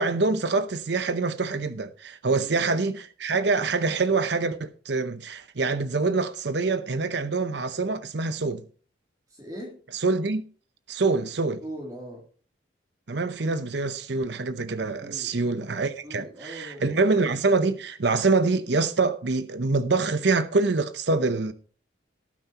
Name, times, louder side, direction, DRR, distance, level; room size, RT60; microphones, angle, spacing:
voice 1, 0.0-8.6 9.9-10.4 10.9-11.6 13.1-21.5, right 3 dB, 60° right, 0.7 m, -25 dB
voice 2, 9.3-9.8 11.6-12.2 15.0-15.3 16.0-17.0, equal, 20° right, 2.8 m, -40 dB
18.0 x 9.3 x 2.9 m
head